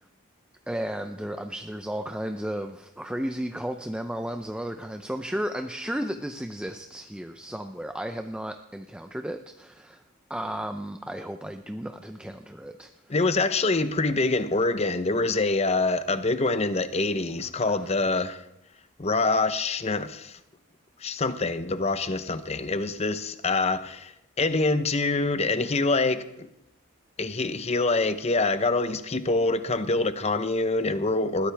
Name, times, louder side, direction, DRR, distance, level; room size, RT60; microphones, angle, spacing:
voice 1, 0.7-10.0 10.3-12.9 17.7-17.9, equal, 5° right, 0.5 m, -34 dB
voice 2, 13.1-18.4 19.0-20.4 21.0-24.1 24.4-26.5 27.2-31.5, left 3 dB, 30° left, 0.8 m, -25 dB
21.0 x 15.0 x 3.4 m
head